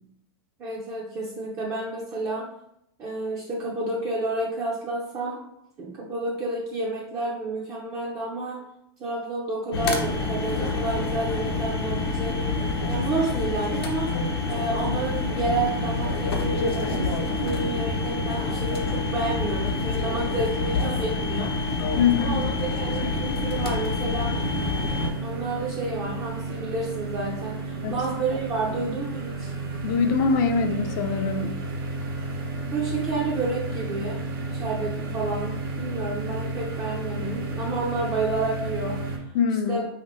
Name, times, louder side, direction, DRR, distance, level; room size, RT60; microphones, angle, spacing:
voice 1, 0.6-2.5 3.0-5.4 5.8-8.7 9.0-12.6 12.9-21.8 22.2-24.4 25.2-29.5 32.6-34.2 34.5-39.2 39.7-39.9, right 2 dB, 25° right, -5 dB, 0.6 m, -30 dB
sound 1, 9.7-25.1, left 3 dB, 80° left, 0.8 m, -27 dB
voice 2, 22.0-22.4 27.8-28.0 29.8-31.6 39.3-39.8, left 5 dB, 50° left, 7 dB, 0.5 m, -23 dB
sound 2, 24.3-39.2, right 3 dB, 70° right, 1.1 m, -32 dB
3.4 x 2.9 x 3.0 m, 0.79 s
supercardioid pair, 150°, 13 cm